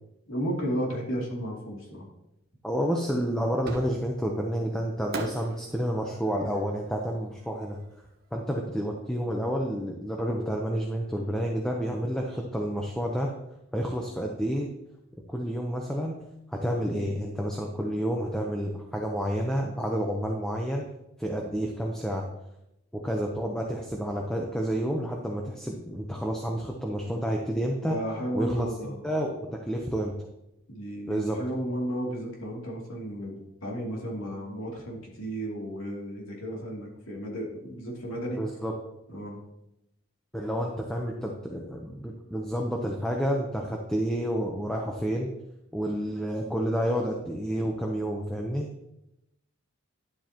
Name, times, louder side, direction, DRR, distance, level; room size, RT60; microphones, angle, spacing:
voice 1, 0.3-2.1 17.0-17.1 27.9-29.0 30.7-38.4 39.1-39.4, equal, 75° left, -3 dB, 2.8 m, -33 dB
voice 2, 2.6-7.8 8.3-13.3 13.7-14.7 15.3-16.2 16.5-20.8 21.2-22.2 22.9-28.0 28.3-28.7 29.0-30.1 31.1-31.4 38.4-38.7 40.3-45.3 45.7-48.7, equal, 5° left, 0 dB, 0.7 m, -29 dB
Fireworks, 3.6-4.3 5.1-8.2, right 1 dB, 45° right, 1.2 m, -40 dB
11.5 x 7.7 x 2.9 m, 0.85 s
head